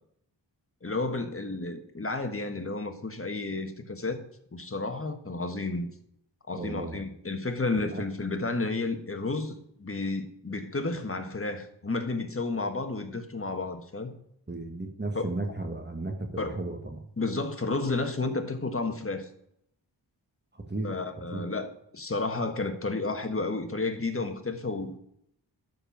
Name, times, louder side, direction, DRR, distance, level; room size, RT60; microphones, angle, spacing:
voice 1, 0.8-4.2 4.5-5.9 6.5-14.1 15.1-15.3 16.4-16.6 17.2-19.3 20.8-25.0, left 3 dB, 30° left, 1.5 m, -31 dB
voice 2, 6.5-7.0 7.8-8.0 14.5-17.0 20.5-20.9 21.3-21.5, right 2 dB, 25° right, 1.6 m, -34 dB
12.0 x 4.5 x 7.1 m
wide cardioid pair, 60°, 43 cm